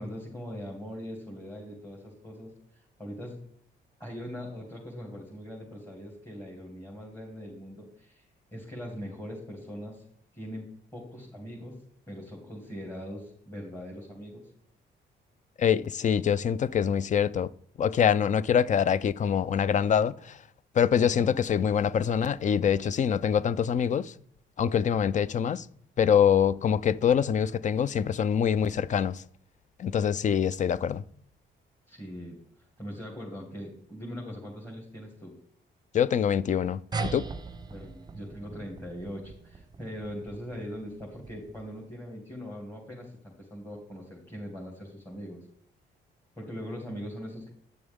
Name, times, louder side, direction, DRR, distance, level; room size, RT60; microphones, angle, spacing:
voice 1, 0.0-3.4 4.0-8.2 8.5-10.0 10.3-10.7 10.9-11.8 12.1-14.5 31.9-35.4 37.7-45.5 46.3-47.5, equal, 10° left, 2.5 m, -41 dB
voice 2, 15.6-17.5 17.8-20.4 20.7-24.1 24.6-25.7 26.0-29.2 29.8-31.0 35.9-37.2, left 8 dB, 40° left, 0.4 m, -25 dB
sound 1, 36.9-41.8, right 4 dB, 20° right, 0.8 m, -40 dB
9.7 x 6.8 x 3.6 m
cardioid pair, 90°, 20 cm